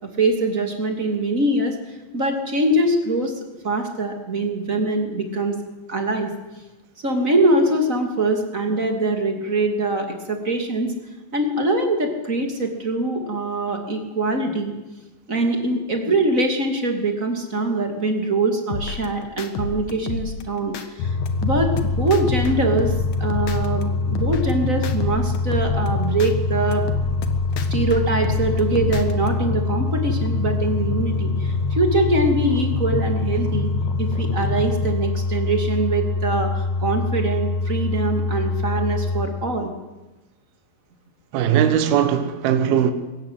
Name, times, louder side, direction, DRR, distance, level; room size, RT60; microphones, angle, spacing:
voice 1, 0.0-3.3 3.6-5.6 5.9-6.3 7.0-10.9 11.3-14.7 15.3-21.1 21.4-22.9 23.2-26.8 27.7-33.7 34.0-39.7, right 2 dB, 25° right, 2.5 m, -23 dB
sound 1, 18.7-20.9 21.3-23.8 24.2-26.3 26.7-29.3, left 5 dB, 60° left, 2.4 m, -31 dB
sound 2, 21.0-39.3, left 3 dB, 75° left, 3.4 m, -24 dB
voice 2, 41.3-42.9, right 9 dB, 75° right, 3.1 m, -19 dB
23.0 x 14.5 x 9.5 m
omnidirectional pair, 4.4 m